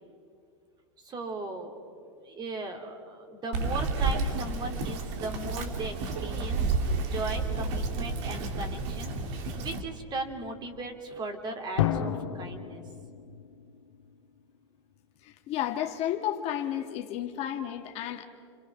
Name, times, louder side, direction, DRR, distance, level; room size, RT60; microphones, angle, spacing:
voice 1, 1.0-1.9 2.2-6.7 7.1-12.8, right 2 dB, 30° right, 4 dB, 3.1 m, -37 dB
Bird vocalization bird call bird song, 3.5-9.8, right 3 dB, 65° right, 2.6 m, -31 dB
Drum, 11.8-14.5, left 10 dB, 80° left, 1.7 m, -32 dB
voice 2, 15.2-18.2, left 11 dB, 45° left, 5 dB, 1.7 m, -32 dB
29.0 x 24.0 x 6.2 m, 2.3 s
hypercardioid pair, 120°, 16 cm